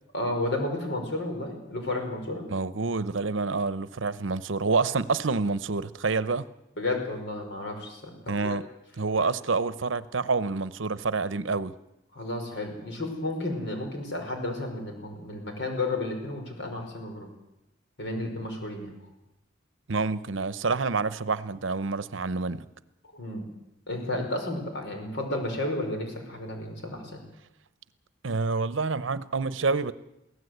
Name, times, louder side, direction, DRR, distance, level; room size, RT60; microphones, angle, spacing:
voice 1, 0.1-2.4 6.8-8.6 9.1-9.3 12.1-17.3 18.0-19.0 23.1-23.5 23.9-27.2, left 2 dB, 60° left, 5.4 m, -32 dB
voice 2, 2.5-6.5 8.3-8.7 9.0-11.7 19.9-22.7 28.2-29.9, right 4 dB, 70° right, 0.8 m, -27 dB
23.5 x 16.5 x 8.0 m
head